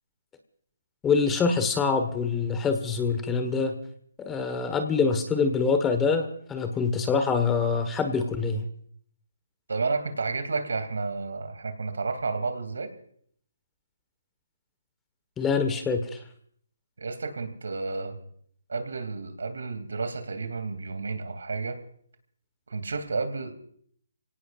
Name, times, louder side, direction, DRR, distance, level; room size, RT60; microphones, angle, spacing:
voice 1, 1.0-3.8 4.2-8.7 15.4-16.2, left 5 dB, 10° left, 7 dB, 1.3 m, -25 dB
voice 2, 9.7-12.9 17.0-18.2 18.7-21.8 22.7-23.5, right 4 dB, 75° right, 7 dB, 2.7 m, -31 dB
28.5 x 17.5 x 2.5 m, 0.62 s
hypercardioid pair, 155°, 0 cm